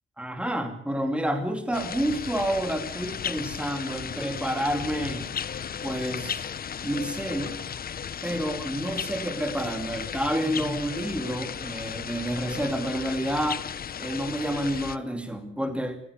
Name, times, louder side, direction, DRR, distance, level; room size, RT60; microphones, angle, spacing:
voice 1, 0.2-5.4 5.8-6.5 6.8-7.6 8.2-13.7 14.0-16.0, equal, 5° right, 6 dB, 2.5 m, -29 dB
sound 1, 1.7-15.0, left 8 dB, 45° left, 0.8 m, -35 dB
26.0 x 15.5 x 8.2 m, 0.63 s
wide cardioid pair, 145°, 21 cm